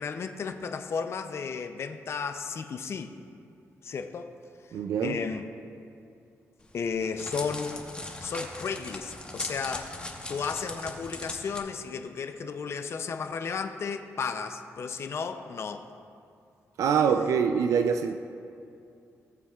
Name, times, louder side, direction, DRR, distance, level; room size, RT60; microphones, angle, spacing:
voice 1, 0.0-3.1 3.8-4.4 5.0-5.5 6.7-7.8 8.2-9.9 10.3-15.9, left 5 dB, 55° left, 7 dB, 0.5 m, -33 dB
voice 2, 4.7-5.2 16.8-18.1, right 7 dB, 85° right, 7 dB, 0.4 m, -24 dB
Crackle, 6.6-11.6, left 2 dB, 20° left, 1.0 m, -39 dB
17.0 x 7.1 x 2.4 m, 2.5 s
cardioid pair, 105°, 5 cm